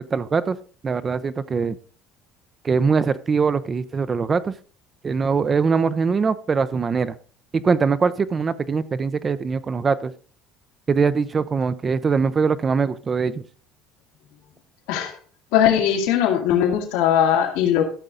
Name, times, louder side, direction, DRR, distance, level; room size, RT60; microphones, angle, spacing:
voice 1, 0.1-0.6 0.8-1.8 2.6-4.6 5.0-7.2 7.5-10.1 10.9-13.4, right 5 dB, 25° right, 14 dB, 0.5 m, -22 dB
voice 2, 15.5-17.8, left 9 dB, 85° left, 3 dB, 2.1 m, -19 dB
13.5 x 6.7 x 3.8 m, 0.42 s
cardioid pair, 145°, 0 cm